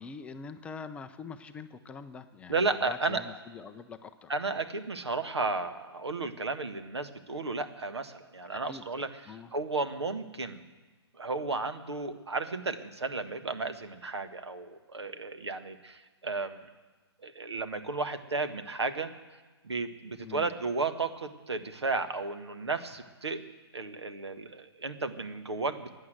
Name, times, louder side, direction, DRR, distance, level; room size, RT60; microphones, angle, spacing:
voice 1, 0.0-4.3 8.5-9.5 20.2-20.5, left 5 dB, 10° left, 8 dB, 0.4 m, -44 dB
voice 2, 2.5-3.2 4.3-10.6 11.2-16.6 17.2-19.1 19.6-23.4 23.7-25.9, right 3 dB, 75° right, 9 dB, 1.4 m, -33 dB
15.5 x 9.7 x 7.9 m, 1.3 s
figure-of-eight pair, 130°, 14 cm